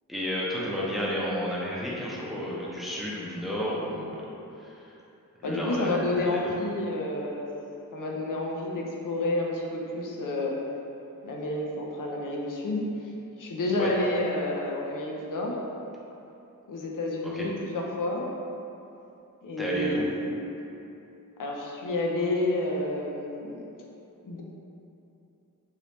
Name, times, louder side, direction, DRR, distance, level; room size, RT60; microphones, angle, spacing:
voice 1, 0.1-4.2 4.6-5.0 5.4-6.4 13.8-13.9 17.2-17.5 19.6-20.1, equal, ahead, -6 dB, 0.6 m, -32 dB
voice 2, 5.4-7.5 7.9-10.6 11.2-13.1 13.4-15.6 16.7-18.2 19.4-20.5 21.4-23.7 24.2-24.4, left 2 dB, 65° left, -2 dB, 0.5 m, -30 dB
2.9 x 2.7 x 3.3 m, 2.9 s
wide cardioid pair, 100°, 35 cm